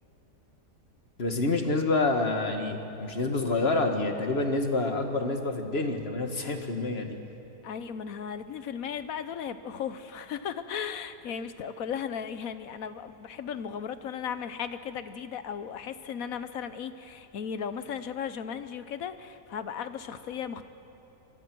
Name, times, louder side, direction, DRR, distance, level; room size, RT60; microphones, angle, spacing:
voice 1, 1.2-7.2, left 2 dB, 40° left, 5 dB, 1.9 m, -27 dB
voice 2, 7.6-20.6, left 7 dB, 65° left, 11 dB, 1.2 m, -36 dB
25.5 x 21.5 x 6.2 m, 2.9 s
omnidirectional pair, 1.7 m